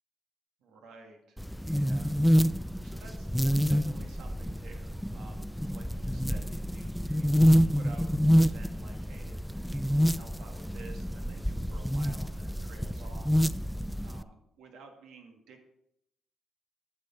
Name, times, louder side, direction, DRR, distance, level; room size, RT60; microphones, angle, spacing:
voice 1, 0.6-7.4 7.7-13.7 14.0-15.7, right 4 dB, 90° right, 2 dB, 1.7 m, -53 dB
sound 1, 1.4-14.2, equal, ahead, 0.3 m, -27 dB
9.5 x 6.5 x 4.3 m, 0.78 s
cardioid pair, 90°, 0 cm